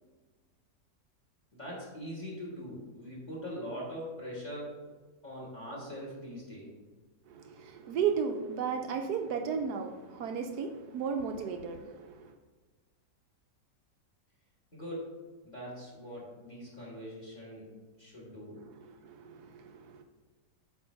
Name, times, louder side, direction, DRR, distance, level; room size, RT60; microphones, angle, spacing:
voice 1, 1.5-4.8 5.2-6.7 14.7-15.2 15.4-17.7 18.0-18.6, equal, 25° left, -5 dB, 2.1 m, -42 dB
voice 2, 7.3-12.3 18.7-20.0, right 6 dB, 70° right, 5 dB, 1.0 m, -34 dB
7.9 x 3.0 x 5.6 m, 1.3 s
omnidirectional pair, 1.9 m